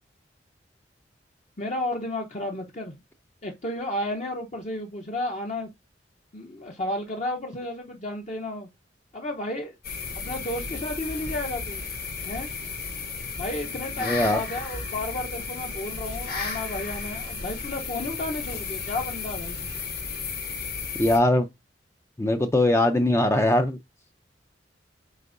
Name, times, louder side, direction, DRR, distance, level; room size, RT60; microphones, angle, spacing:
voice 1, 1.6-2.9 3.4-5.7 6.3-8.7 9.1-9.8 10.1-11.8 12.2-12.5 13.4-19.7, left 1 dB, 40° left, 0.8 m, -32 dB
sound 1, 9.8-21.2, left 4 dB, 55° left, 2.7 m, -34 dB
voice 2, 14.0-14.4 21.0-21.5 22.2-23.8, left 1 dB, 15° left, 0.4 m, -21 dB
8.2 x 4.4 x 2.6 m
head